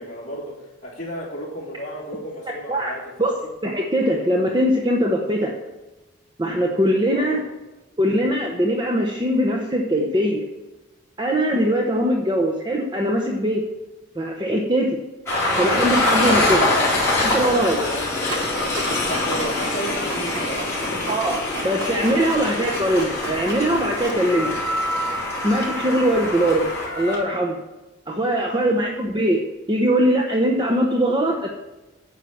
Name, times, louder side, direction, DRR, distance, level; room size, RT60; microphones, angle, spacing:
voice 1, 0.0-3.3 7.1-7.4 17.8-18.1 19.1-21.2 28.5-28.7, equal, 35° left, -5 dB, 3.0 m, -33 dB
voice 2, 3.6-5.5 6.4-7.4 8.0-10.4 11.2-13.6 14.2-15.0 15.6-16.7 17.2-17.8 21.1-21.4 21.6-24.5 25.4-26.7 26.9-27.6 28.1-29.4 29.7-31.5, equal, 20° right, 0 dB, 0.8 m, -21 dB
Train, 15.3-27.2, left 2 dB, 15° left, 3.9 m, -24 dB
Printer, 18.3-24.5, right 2 dB, 70° right, 1.0 m, -35 dB
9.5 x 5.7 x 7.2 m, 1.1 s
head